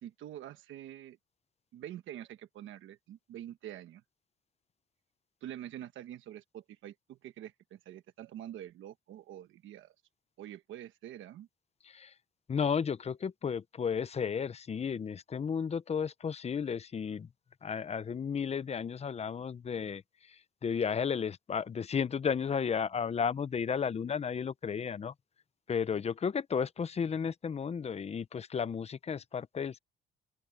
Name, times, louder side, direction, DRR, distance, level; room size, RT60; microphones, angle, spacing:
voice 1, 0.0-1.2 1.7-4.0 5.4-9.9 10.4-11.5, right 11 dB, 80° right, 1.2 m, -46 dB
voice 2, 12.5-17.3 17.6-20.0 20.6-25.1 25.7-29.8, left 6 dB, 30° left, 0.7 m, -33 dB
open air
cardioid pair, 110°, 20 cm